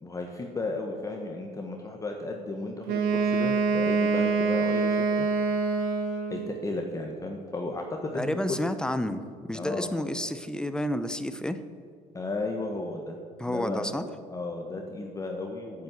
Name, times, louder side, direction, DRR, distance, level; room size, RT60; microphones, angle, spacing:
voice 1, 0.0-5.3 6.3-8.6 9.5-9.9 12.1-13.2 13.5-13.9 14.3-15.8, left 2 dB, 25° left, 2 dB, 1.2 m, -34 dB
Wind instrument woodwind instrument, 2.8-6.6, right 4 dB, 85° right, 1.3 m, -25 dB
voice 2, 8.1-9.2 9.5-11.6 13.4-14.1, left 1 dB, 5° left, 11 dB, 0.7 m, -30 dB
8.9 x 8.5 x 7.8 m, 2.1 s
cardioid pair, 100°, 14 cm